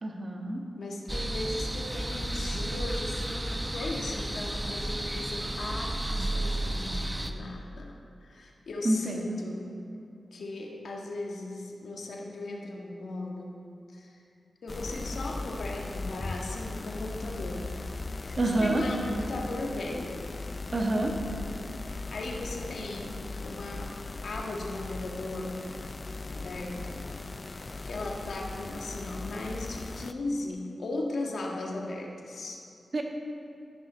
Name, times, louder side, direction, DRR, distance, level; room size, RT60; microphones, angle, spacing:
voice 1, 0.0-0.6 8.8-9.2 18.4-18.8 20.7-21.1 32.9-33.0, right 1 dB, 50° right, 1 dB, 1.6 m, -27 dB
voice 2, 0.7-7.9 8.2-9.7 10.3-13.6 13.9-14.2 14.6-17.7 18.2-20.3 21.7-23.1 23.4-23.9 24.2-25.6 26.3-27.0 27.4-32.6, left 2 dB, 80° left, -1 dB, 1.6 m, -37 dB
sound 1, 1.1-7.3, right 1 dB, 15° right, 0.9 m, -32 dB
sound 2, 14.7-30.1, left 3 dB, 45° left, 0.4 m, -38 dB
14.0 x 11.0 x 4.0 m, 2.6 s
cardioid pair, 55°, 0 cm